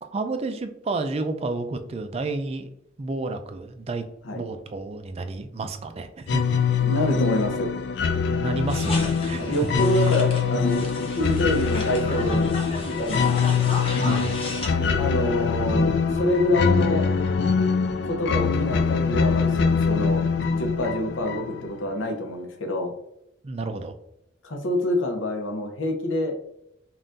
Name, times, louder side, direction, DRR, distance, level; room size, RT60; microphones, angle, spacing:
voice 1, 0.0-2.7 3.0-4.0 4.3-6.4 8.3-9.7 14.0-14.4 23.4-23.9, right 3 dB, 30° right, 7 dB, 0.3 m, -31 dB
sound 1, 6.3-21.8, left 5 dB, 60° left, 0.3 m, -23 dB
voice 2, 6.8-7.7 9.4-12.4 12.8-13.5 14.7-17.1 18.0-20.2 20.5-22.9 24.4-26.3, left 1 dB, 85° left, 3 dB, 0.8 m, -26 dB
sound 2, 8.7-14.7, left 2 dB, 30° left, 0.7 m, -35 dB
5.5 x 2.5 x 2.6 m, 0.79 s
head